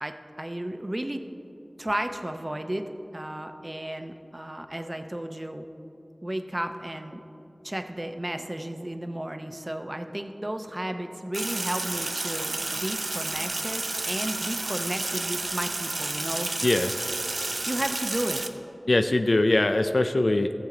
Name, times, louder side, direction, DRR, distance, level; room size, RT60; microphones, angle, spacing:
voice 1, 0.0-1.2 1.8-5.7 6.2-7.2 7.6-16.5 17.7-18.4, right 1 dB, 35° right, 7 dB, 0.7 m, -33 dB
Sink (filling or washing), 11.3-18.5, right 2 dB, 85° right, 0.5 m, -31 dB
voice 2, 16.6-17.0 18.9-20.5, left 2 dB, 75° left, 7 dB, 0.4 m, -22 dB
16.0 x 7.3 x 3.8 m, 2.9 s
wide cardioid pair, 45°, 0 cm